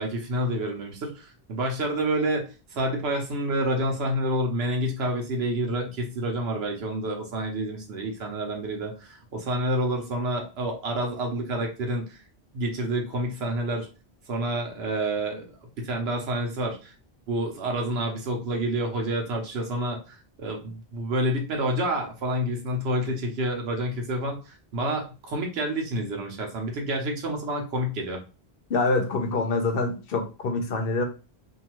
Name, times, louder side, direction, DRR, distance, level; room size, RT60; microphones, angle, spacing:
voice 1, 0.0-12.2 12.5-13.9 14.3-15.4 15.8-16.9 17.3-28.2, right 1 dB, 75° right, 2 dB, 1.0 m, -28 dB
voice 2, 28.7-31.0, left 3 dB, 65° left, 4 dB, 0.8 m, -25 dB
2.7 x 2.3 x 2.9 m, 0.32 s
omnidirectional pair, 1.1 m